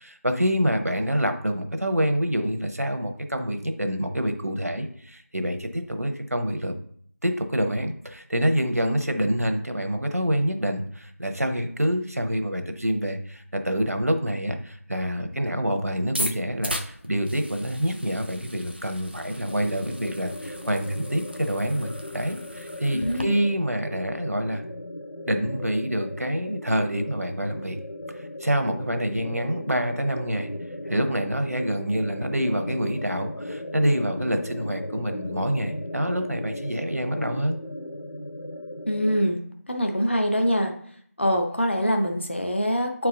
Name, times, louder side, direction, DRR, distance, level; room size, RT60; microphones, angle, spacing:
voice 1, 0.0-6.8 7.2-24.6 25.3-27.8 28.1-30.5 30.9-37.6, equal, 70° right, 6 dB, 1.0 m, -26 dB
sound 1, 16.0-23.2, equal, 40° right, 0.5 m, -37 dB
sound 2, 19.5-39.2, left 1 dB, 80° left, 0.9 m, -37 dB
voice 2, 22.9-23.3 38.9-39.4 39.7-40.7 41.2-43.1, equal, 45° left, 3 dB, 0.7 m, -24 dB
7.2 x 4.7 x 3.8 m, 0.62 s
figure-of-eight pair, 180°, 8 cm